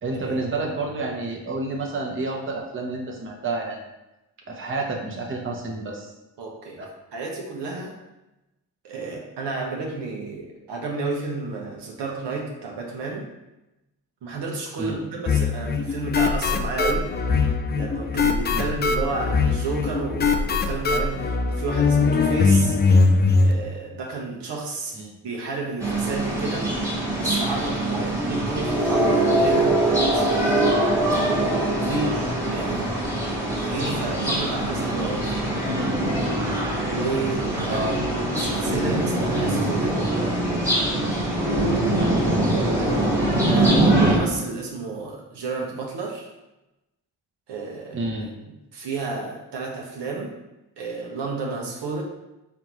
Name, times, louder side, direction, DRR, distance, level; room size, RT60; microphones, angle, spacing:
voice 1, 0.0-3.8 4.5-6.1 6.8-6.9 14.8-15.0 18.5-18.7 25.0-25.2 27.9-28.2 32.0-32.2 37.7-37.9 41.9-42.9 47.9-48.3, right 2 dB, 30° right, 0 dB, 0.9 m, -30 dB
voice 2, 6.4-6.8 7.1-8.0 8.8-13.3 14.2-17.1 17.7-22.8 23.4-24.9 25.2-26.7 27.1-30.7 31.1-31.4 31.8-32.2 32.5-32.8 33.6-35.8 36.8-37.9 38.4-40.1 41.7-42.1 42.9-43.2 43.4-46.3 47.5-48.3 48.7-50.3 50.8-52.0, right 3 dB, 75° right, -1 dB, 1.0 m, -31 dB
sound 1, 15.3-23.5, left 4 dB, 25° left, 0.4 m, -21 dB
sound 2, 25.8-44.2, right 1 dB, 5° right, 1.4 m, -23 dB
3.7 x 3.5 x 3.0 m, 0.97 s
supercardioid pair, 60°, 42 cm